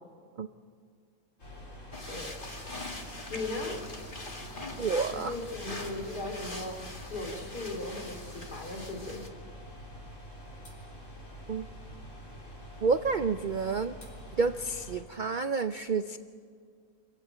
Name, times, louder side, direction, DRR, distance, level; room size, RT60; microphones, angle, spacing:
sound 1, 1.4-15.0, equal, 50° left, 4.4 m, -46 dB
sound 2, 1.9-9.3, left 2 dB, 30° left, 2.3 m, -43 dB
voice 1, 2.1-2.4 3.3-3.8 5.1-6.8 7.1-9.2, left 2 dB, 85° left, 3 dB, 3.8 m, -37 dB
voice 2, 4.8-5.3 11.5-11.6 12.8-14.0 14.4-16.2, right 4 dB, 60° right, 10 dB, 0.5 m, -29 dB
26.5 x 15.5 x 9.0 m, 2.2 s
omnidirectional pair, 1.6 m